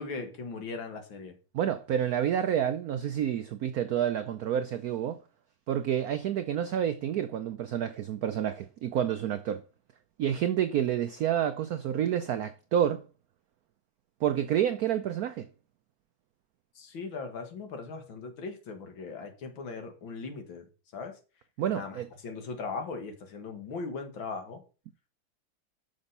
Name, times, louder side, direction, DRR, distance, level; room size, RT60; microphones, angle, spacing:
voice 1, 0.0-1.3 16.8-21.2 21.6-24.6, left 4 dB, 70° left, 2.3 m, -39 dB
voice 2, 1.5-5.2 5.7-9.6 10.2-13.0 14.2-15.5 21.6-22.1, right 10 dB, 80° right, 0.8 m, -29 dB
6.5 x 6.0 x 5.4 m
omnidirectional pair, 2.2 m